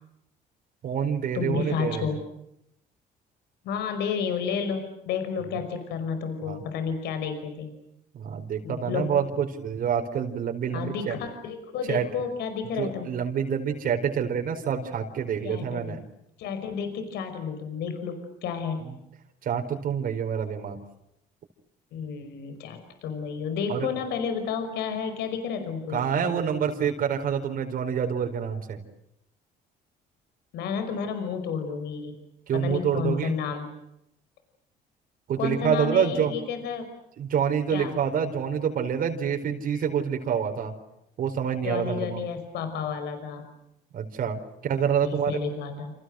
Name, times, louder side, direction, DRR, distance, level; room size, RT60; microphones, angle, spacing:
voice 1, 0.8-2.1 6.4-6.6 8.1-11.1 11.9-12.1 12.8-16.0 18.8-18.9 19.4-20.8 23.7-23.9 25.9-28.8 32.5-33.3 35.3-36.3 37.2-40.7 41.2-42.2 43.9-45.3, right 7 dB, 55° right, 4 dB, 4.6 m, -27 dB
voice 2, 1.3-2.2 3.6-7.7 8.6-9.1 10.7-13.3 15.4-16.0 16.4-18.9 21.9-26.3 30.5-32.2 32.5-33.7 35.4-36.9 37.7-38.0 41.6-43.5 45.0-45.9, left 6 dB, 80° left, 7 dB, 5.5 m, -31 dB
29.5 x 29.0 x 6.5 m, 0.82 s
cardioid pair, 110°, 17 cm